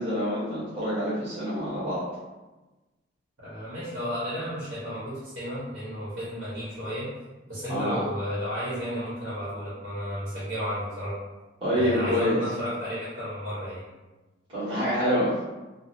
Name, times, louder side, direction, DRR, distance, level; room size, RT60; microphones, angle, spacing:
voice 1, 0.0-2.0 7.7-8.0 11.6-12.4 14.5-15.4, equal, 30° right, -12 dB, 1.2 m, -26 dB
voice 2, 3.4-7.1 7.5-11.1 11.7-13.8, equal, 65° right, -10 dB, 1.3 m, -33 dB
3.8 x 2.1 x 2.8 m, 1.1 s
head